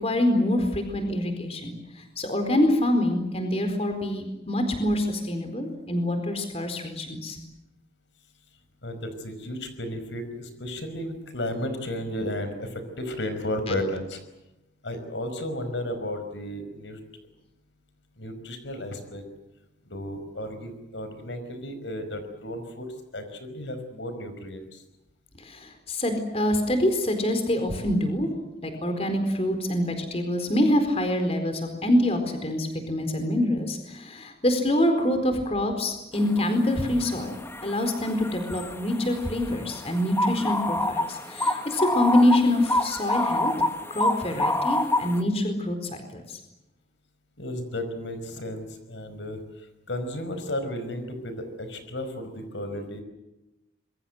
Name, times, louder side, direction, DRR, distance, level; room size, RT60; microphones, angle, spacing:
voice 1, 0.0-1.7 2.2-7.4 25.4-28.3 28.6-37.4 37.6-43.5 43.9-45.8 46.1-46.2, left 1 dB, 35° left, 7 dB, 4.3 m, -25 dB
voice 2, 8.8-14.2 14.8-17.0 18.2-19.2 19.9-22.9 23.1-24.8 47.4-49.4 49.9-53.0, left 1 dB, 85° left, 9 dB, 5.2 m, -33 dB
sound 1, 36.3-36.5 36.8-45.2, left 1 dB, 15° left, 1.3 m, -28 dB
26.0 x 23.0 x 8.0 m, 0.94 s
head